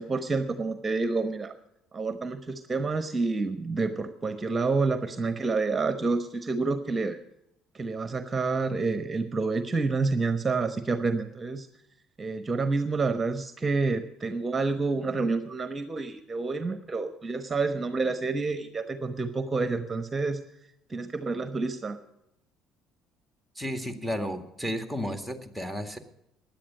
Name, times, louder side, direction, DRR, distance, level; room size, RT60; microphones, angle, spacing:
voice 1, 0.0-1.5 1.9-7.2 7.7-11.7 12.2-20.4 20.9-22.0, right 3 dB, 25° right, 9 dB, 1.0 m, -28 dB
voice 2, 23.6-26.0, equal, 5° left, 6 dB, 1.9 m, -33 dB
16.5 x 10.5 x 5.3 m, 0.81 s
hypercardioid pair, 55°, 0 cm